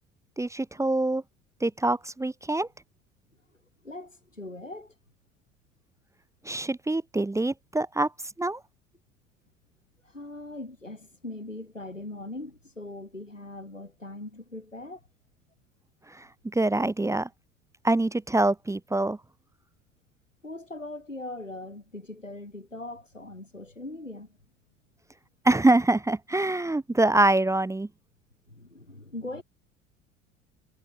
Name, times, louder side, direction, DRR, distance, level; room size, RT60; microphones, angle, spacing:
voice 1, 0.4-1.2 1.6-2.7 6.4-8.1 8.4-8.6 16.5-17.3 17.8-19.2 25.4-27.9, right 2 dB, 10° right, 1.2 m, -24 dB
voice 2, 3.8-4.9 10.0-15.0 20.4-24.4 28.5-29.4, left 2 dB, 90° left, 6.3 m, -40 dB
figure-of-eight pair, 65°, 37 cm